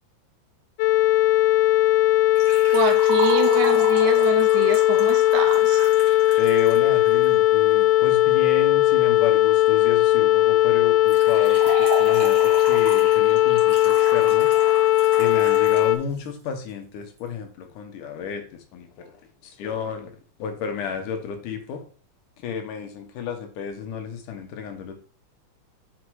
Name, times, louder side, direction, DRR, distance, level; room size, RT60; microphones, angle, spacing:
sound 1, 0.8-16.0, left 15 dB, 90° left, 2.3 m, -18 dB
Liquid, 2.4-7.3 11.1-15.9 16.2-16.3 17.2-17.3, right 3 dB, 45° right, 3.2 m, -34 dB
voice 1, 2.7-5.8, right 7 dB, 70° right, 3 dB, 2.4 m, -26 dB
voice 2, 6.4-14.5 15.2-18.4 18.7-19.1 19.4-21.8 22.4-24.9, left 6 dB, 75° left, 6 dB, 2.5 m, -32 dB
6.2 x 4.6 x 4.6 m, 0.41 s
omnidirectional pair, 3.8 m